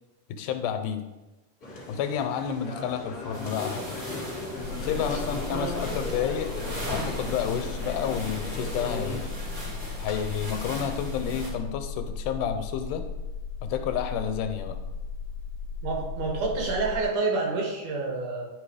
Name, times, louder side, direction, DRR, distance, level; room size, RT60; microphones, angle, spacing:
voice 1, 0.3-1.1 1.9-4.0 4.8-6.5 6.9-9.4 10.0-13.0 13.6-14.8, left 8 dB, 85° left, 7 dB, 2.1 m, -30 dB
sound 1, 1.6-9.3, left 2 dB, 30° left, 1.5 m, -38 dB
sound 2, 3.3-11.5, equal, 25° right, 1.8 m, -38 dB
sound 3, 4.6-17.0, left 5 dB, 65° left, 1.6 m, -36 dB
voice 2, 5.5-6.0 15.8-18.5, right 3 dB, 75° right, -1 dB, 2.9 m, -29 dB
10.5 x 3.7 x 4.9 m, 1.1 s
omnidirectional pair, 3.7 m